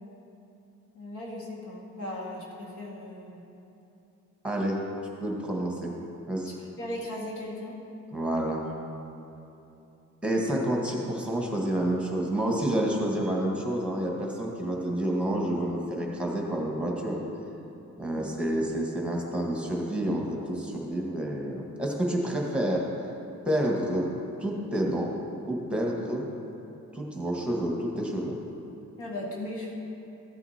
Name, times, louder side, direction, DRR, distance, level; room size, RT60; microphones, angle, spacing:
voice 1, 0.9-3.4 6.4-7.8 18.1-18.4 29.0-29.7, left 1 dB, 85° left, -3 dB, 2.1 m, -37 dB
voice 2, 4.4-4.8 5.2-5.9 6.3-6.5 8.1-8.6 10.2-17.2 18.0-22.8 23.5-24.1 24.4-25.1 25.5-26.3 26.9-28.4, right 1 dB, 5° right, -2 dB, 1.6 m, -29 dB
14.0 x 8.0 x 2.9 m, 2.9 s
cardioid pair, 90°, 30 cm